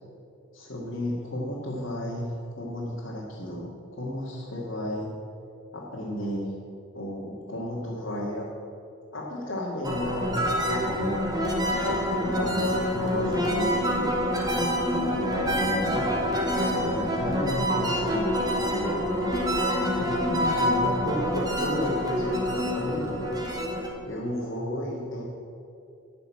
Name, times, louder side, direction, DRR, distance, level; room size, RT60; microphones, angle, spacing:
voice 1, 0.5-5.1 5.7-6.5 6.9-8.5 9.1-11.1 11.8-14.2 14.6-16.1 16.7-20.2 20.6-23.2 24.0-25.2, left 1 dB, 70° left, -6 dB, 1.9 m, -33 dB
sound 1, 9.8-23.9, equal, 20° right, 1.7 m, -26 dB
10.5 x 6.6 x 8.6 m, 2.6 s
head